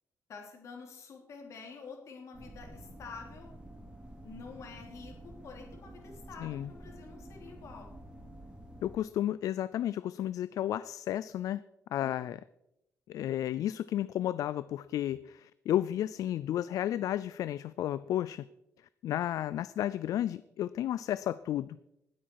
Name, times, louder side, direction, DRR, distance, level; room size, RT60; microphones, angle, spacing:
voice 1, 0.3-3.5 4.2-7.9, left 5 dB, 55° left, 2 dB, 3.1 m, -48 dB
sound 1, 2.3-9.0, right 1 dB, 15° right, 2.7 m, -49 dB
voice 2, 8.8-11.6 11.9-12.4 13.1-18.4 19.0-21.8, left 12 dB, 70° left, 16 dB, 0.4 m, -32 dB
19.5 x 8.7 x 4.7 m, 0.86 s
cardioid pair, 160°, 6 cm